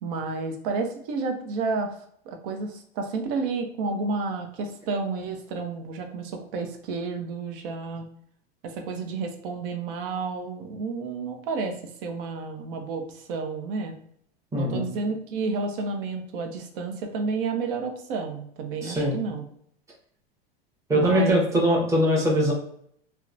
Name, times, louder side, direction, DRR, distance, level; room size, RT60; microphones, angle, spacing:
voice 1, 0.0-2.0 2.3-8.0 8.6-13.9 14.5-19.5 20.9-21.4, right 4 dB, 60° right, 4 dB, 0.7 m, -31 dB
voice 2, 14.5-14.8 18.8-19.2 20.9-22.5, equal, 10° right, -3 dB, 0.8 m, -22 dB
2.9 x 2.1 x 2.4 m, 0.66 s
hypercardioid pair, 115°, 30 cm